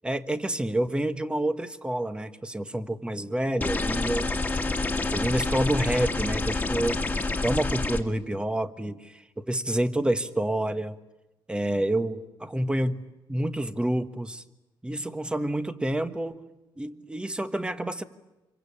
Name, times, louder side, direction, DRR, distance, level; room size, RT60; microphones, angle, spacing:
voice 1, 0.0-4.3 5.1-7.0 7.4-11.0 11.5-13.0 13.3-14.4 14.8-16.4 16.8-18.0, right 1 dB, 10° right, 10 dB, 1.4 m, -28 dB
sound 1, 3.6-8.0, left 3 dB, 15° left, 2.1 m, -28 dB
27.0 x 23.5 x 8.7 m, 0.99 s
cardioid pair, 110°, 9 cm